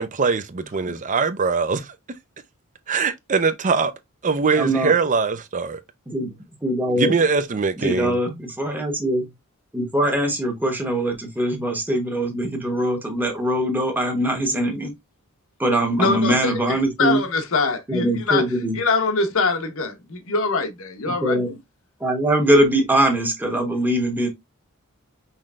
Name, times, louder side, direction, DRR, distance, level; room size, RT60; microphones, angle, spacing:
voice 1, 0.0-1.9 2.9-3.9 4.2-5.8 7.0-8.2, right 4 dB, 35° right, 0.5 m, -22 dB
voice 2, 4.6-4.9 6.1-6.3 6.6-7.1 7.8-9.2 9.7-14.9 15.6-17.2 17.9-18.8 21.1-21.5 22.0-24.3, right 1 dB, 10° right, 1.0 m, -22 dB
voice 3, 16.0-18.4 18.7-21.4, left 3 dB, 65° left, 0.9 m, -23 dB
5.7 x 3.2 x 2.4 m
head